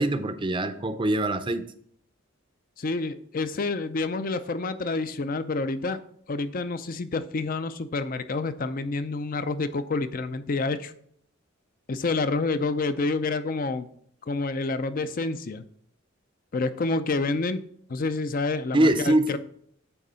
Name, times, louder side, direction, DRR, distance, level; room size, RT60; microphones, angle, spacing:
voice 1, 0.0-1.6 18.7-19.2, right 1 dB, 25° right, 10 dB, 0.5 m, -23 dB
voice 2, 2.8-6.0 6.3-10.9 11.9-13.9 14.3-15.6 16.5-17.6 17.9-19.4, left 3 dB, 40° left, 12 dB, 0.5 m, -28 dB
9.0 x 3.7 x 5.5 m, 0.66 s
head